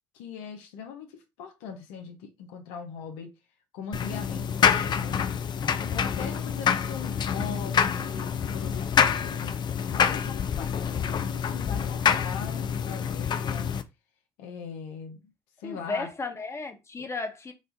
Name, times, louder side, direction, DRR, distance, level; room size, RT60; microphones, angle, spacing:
voice 1, 0.1-3.3 3.7-5.3 5.9-9.6 9.9-13.7 14.4-15.2 15.6-16.1 17.0-17.1, left 6 dB, 80° left, 0.8 m, -40 dB
sound 1, 3.9-13.8, left 7 dB, 45° left, 0.5 m, -27 dB
voice 2, 6.0-6.5 15.6-17.5, left 3 dB, 25° left, 1.2 m, -35 dB
5.2 x 2.5 x 3.8 m
hypercardioid pair, 60°, 11 cm